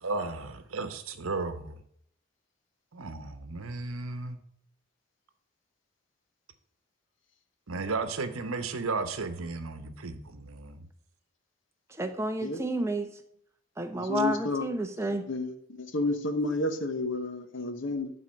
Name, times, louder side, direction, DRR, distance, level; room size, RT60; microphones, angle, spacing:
voice 1, 0.0-1.8 2.9-4.4 7.7-10.8, right 3 dB, 80° right, 1.0 m, -34 dB
voice 2, 12.0-13.1 13.8-15.3, right 1 dB, 15° right, 0.7 m, -30 dB
voice 3, 14.0-14.7 15.3-15.5 15.9-18.1, left 2 dB, 60° left, 1.0 m, -30 dB
12.0 x 4.1 x 5.3 m
head